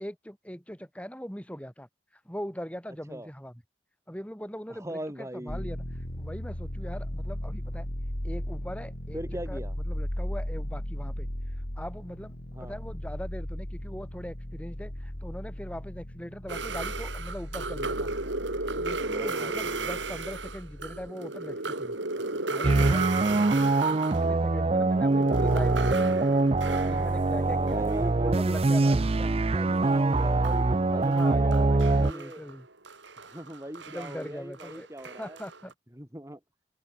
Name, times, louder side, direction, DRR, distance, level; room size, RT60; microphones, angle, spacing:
voice 1, 0.0-1.9 2.2-3.6 4.1-5.8 6.2-7.9 8.2-9.2 9.5-11.3 11.8-18.1 18.7-22.0 22.5-23.5 24.1-26.2 26.9-29.0 30.9-32.7 33.9-35.7, equal, 5° left, 6.9 m, -40 dB
voice 2, 4.7-5.7 9.1-9.7 12.5-12.8 19.1-20.0 23.2-23.5 27.3-32.4 33.2-35.4 35.9-36.4, right 1 dB, 15° right, 2.6 m, -40 dB
sound 1, 5.5-21.1, equal, 50° left, 3.3 m, -37 dB
sound 2, 16.5-24.4 24.7-29.4 29.6-35.7, right 3 dB, 75° right, 4.0 m, -35 dB
sound 3, 22.6-32.1, right 2 dB, 30° right, 0.5 m, -24 dB
open air
head